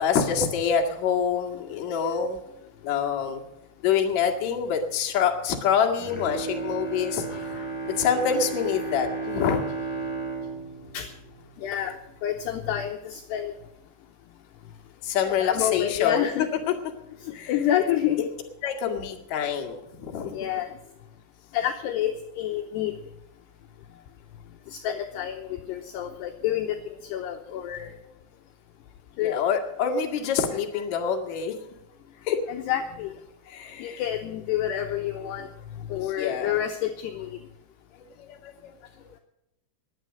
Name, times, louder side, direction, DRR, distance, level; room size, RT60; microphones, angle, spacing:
voice 1, 0.0-2.4 2.8-3.4 3.8-7.3 8.0-9.6 15.0-16.3 16.7-16.8 17.3-17.5 18.6-20.3 29.2-31.6 32.2-32.4 33.5-34.0 36.2-36.6 38.2-38.7, left 7 dB, 50° left, 2 dB, 2.2 m, -26 dB
Bowed string instrument, 5.9-12.2 12.6-12.7, right 3 dB, 5° left, 2.2 m, -34 dB
voice 2, 7.3-7.7 10.9-11.1 11.6-12.0 12.2-13.5 15.2-16.5 17.2-18.3 20.3-20.7 21.5-22.9 24.7-26.8 27.0-27.9 29.2-29.4 32.5-33.1 33.8-35.5 35.9-37.4, left 11 dB, 80° left, 4 dB, 2.4 m, -28 dB
21.0 x 8.2 x 6.4 m, 0.90 s
omnidirectional pair, 5.8 m